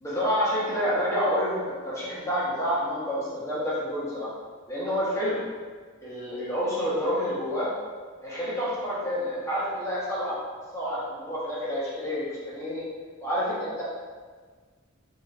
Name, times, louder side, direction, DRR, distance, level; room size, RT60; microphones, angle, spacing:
voice 1, 0.0-4.3 4.7-5.5 6.0-7.7 8.2-10.4 10.7-12.8 13.2-13.8, equal, 15° left, -9 dB, 1.5 m, -28 dB
4.3 x 4.1 x 2.7 m, 1.5 s
head